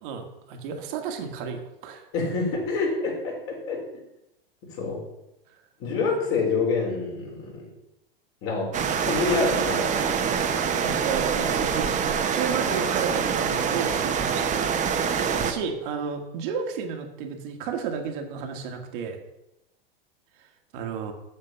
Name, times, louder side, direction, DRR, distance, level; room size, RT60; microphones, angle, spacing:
voice 1, 0.0-2.0 6.0-6.2 10.8-11.9 12.3-14.5 15.4-19.2 20.7-21.1, right 6 dB, 55° right, 4 dB, 1.6 m, -32 dB
voice 2, 2.1-3.8 4.8-5.0 5.8-7.7 8.4-9.9, left 4 dB, 45° left, -2 dB, 4.2 m, -27 dB
sound 1, 8.7-15.5, right 7 dB, 25° right, 1.0 m, -25 dB
7.8 x 7.4 x 5.7 m, 0.90 s
hypercardioid pair, 110°, 30 cm